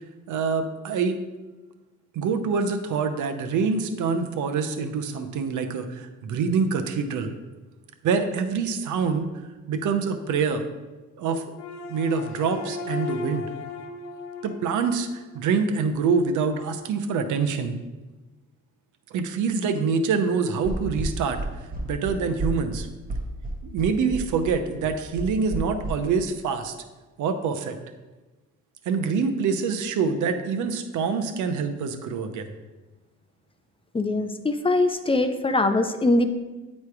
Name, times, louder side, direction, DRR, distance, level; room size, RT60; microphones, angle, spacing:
voice 1, 0.3-1.2 2.1-7.3 8.0-9.3 9.7-10.6 11.2-11.4 11.9-13.5 14.4-17.7 19.1-21.4 21.8-22.9 23.7-26.7 27.2-27.8 28.9-32.4, right 5 dB, 75° right, 7 dB, 0.7 m, -25 dB
sound 1, 11.5-15.9, left 4 dB, 65° left, 0.7 m, -36 dB
sound 2, 20.6-25.9, right 2 dB, 30° right, 1.5 m, -31 dB
voice 2, 33.9-36.3, left 2 dB, 20° left, 8 dB, 0.5 m, -22 dB
9.5 x 3.2 x 4.7 m, 1.2 s
cardioid pair, 90°, 30 cm